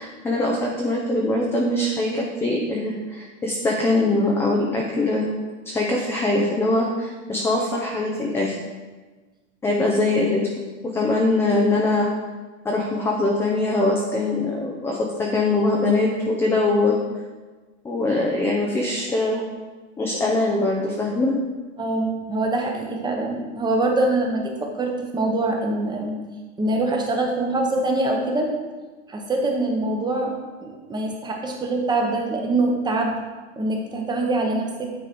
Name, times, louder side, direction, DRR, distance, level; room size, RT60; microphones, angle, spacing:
voice 1, 0.0-5.3 5.7-8.5 9.6-10.5 10.9-12.1 12.6-16.9 17.8-19.4 20.0-21.4, left 2 dB, 5° left, -2 dB, 0.4 m, -22 dB
voice 2, 21.8-26.2 26.6-28.5 29.1-30.3 30.6-33.2 33.6-34.9, right 2 dB, 10° right, 1 dB, 0.8 m, -24 dB
9.2 x 3.8 x 4.5 m, 1.3 s
supercardioid pair, 140°, 37 cm